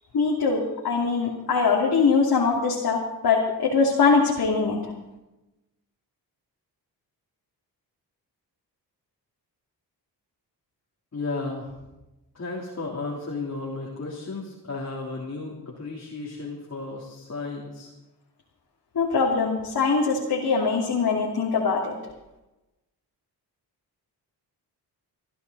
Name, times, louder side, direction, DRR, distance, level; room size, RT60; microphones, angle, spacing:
voice 1, 0.1-4.8 18.9-21.9, left 4 dB, 60° left, -2 dB, 2.8 m, -22 dB
voice 2, 11.1-11.7 12.3-17.9, left 3 dB, 40° left, -3 dB, 3.3 m, -34 dB
21.5 x 13.5 x 4.1 m, 1.0 s
cardioid pair, 75°, 40 cm